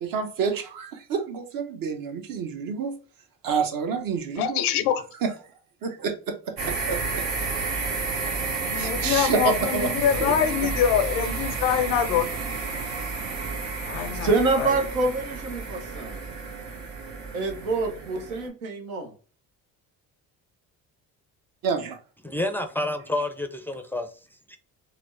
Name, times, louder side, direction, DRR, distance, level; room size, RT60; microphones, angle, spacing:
voice 1, 0.0-2.9 3.4-4.6 5.2-5.3 5.8-7.2 8.8-9.9 10.2-10.3 21.6-22.0, right 5 dB, 55° right, 0.9 m, -28 dB
voice 2, 4.4-5.0 8.7-12.3 13.9-14.3 14.6-14.9, left 9 dB, 90° left, 0.5 m, -24 dB
sound 1, 6.6-18.5, right 4 dB, 75° right, 1.2 m, -31 dB
voice 3, 14.2-16.2 17.3-19.1, right 3 dB, 90° right, 0.8 m, -26 dB
voice 4, 22.2-24.1 24.5-24.6, left 1 dB, 5° left, 0.4 m, -29 dB
4.3 x 2.1 x 2.6 m
hypercardioid pair, 60°, 41 cm